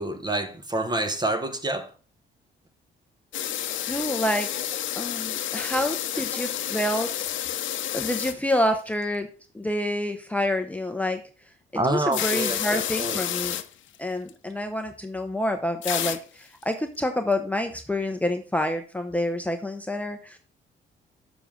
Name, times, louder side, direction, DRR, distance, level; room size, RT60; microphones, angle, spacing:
voice 1, 0.0-1.9 5.5-5.6 6.3-6.4 11.7-13.2, right 2 dB, 20° right, 1.2 m, -28 dB
sound 1, 3.3-8.5 8.9-9.0 12.1-13.6 13.9-14.0 14.3-14.4 15.8-16.2 16.6-16.7, left 11 dB, 75° left, 0.8 m, -30 dB
voice 2, 3.9-4.5 4.9-7.2 7.9-9.3 9.5-11.2 11.7-13.6 14.0-20.4, left 1 dB, 5° left, 0.8 m, -28 dB
7.2 x 6.9 x 3.7 m
cardioid pair, 90°, 20 cm